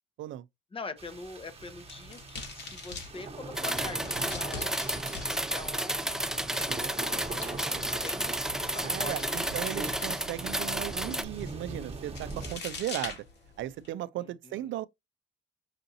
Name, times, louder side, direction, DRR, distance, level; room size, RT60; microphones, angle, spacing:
voice 1, 0.7-6.7 7.9-9.5 14.2-14.7, left 3 dB, 25° left, 0.7 m, -44 dB
sound 1, 1.0-12.6, right 3 dB, 30° right, 1.1 m, -41 dB
sound 2, 1.5-13.9, left 4 dB, 60° left, 1.7 m, -46 dB
sound 3, 3.5-11.2, right 1 dB, 5° right, 0.3 m, -32 dB
voice 2, 8.8-13.2 13.6-14.9, right 14 dB, 75° right, 0.4 m, -36 dB
5.7 x 2.6 x 2.7 m
cardioid pair, 90°, 20 cm